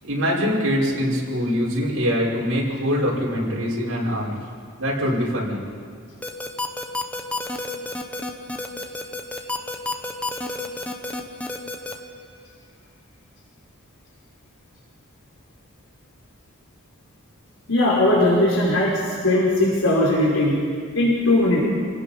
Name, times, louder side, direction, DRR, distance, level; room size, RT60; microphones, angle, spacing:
voice 1, 0.0-4.4 4.8-5.6, equal, 75° right, -5 dB, 6.3 m, -23 dB
sound 1, 6.2-11.9, left 2 dB, 5° left, 1.3 m, -29 dB
voice 2, 17.7-20.6 20.9-21.7, left 1 dB, 80° left, -6 dB, 5.2 m, -19 dB
29.5 x 18.5 x 5.6 m, 2.2 s
head